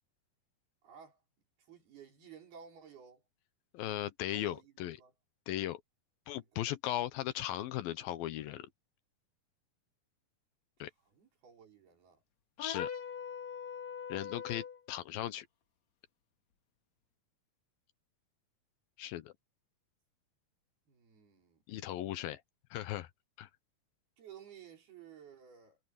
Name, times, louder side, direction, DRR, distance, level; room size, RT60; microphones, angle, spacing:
voice 1, 0.8-1.2 1.6-3.2 4.3-5.1 6.3-6.5 11.1-12.2 20.9-21.6 24.2-25.8, right 7 dB, 80° right, 7.0 m, -55 dB
voice 2, 3.7-5.0 5.5-5.8 6.3-8.7 10.8-10.9 12.6-12.9 14.1-15.5 19.0-19.3 21.7-22.4 22.7-23.1 23.4-23.5, left 13 dB, 75° left, 2.6 m, -37 dB
sound 1, 12.6-14.8, left 8 dB, 55° left, 2.5 m, -41 dB
omnidirectional pair, 4.4 m